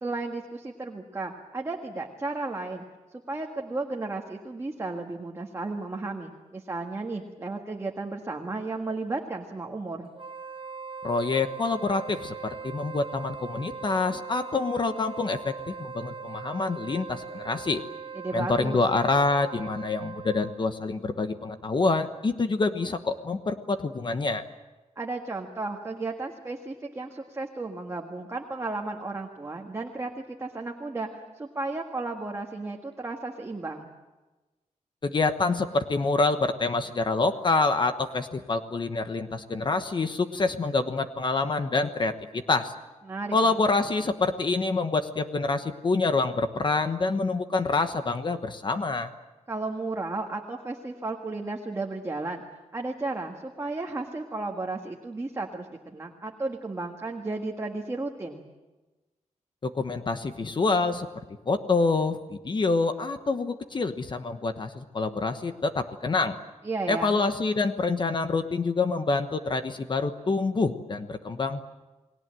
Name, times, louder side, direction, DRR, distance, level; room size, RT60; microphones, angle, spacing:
voice 1, 0.0-2.8 3.3-10.1 18.1-18.8 25.0-33.9 43.1-43.5 49.5-52.4 52.7-58.4 66.6-67.2, right 3 dB, 20° right, 1 dB, 1.7 m, -34 dB
Wind instrument woodwind instrument, 10.1-20.7, right 5 dB, 45° right, 0.9 m, -40 dB
voice 2, 11.0-17.8 18.3-24.4 35.0-42.7 43.3-49.1 59.6-61.1 61.5-66.4 66.9-71.6, left 3 dB, 40° left, 8 dB, 1.1 m, -26 dB
29.5 x 20.5 x 7.7 m, 1.2 s
wide cardioid pair, 165°, 13 cm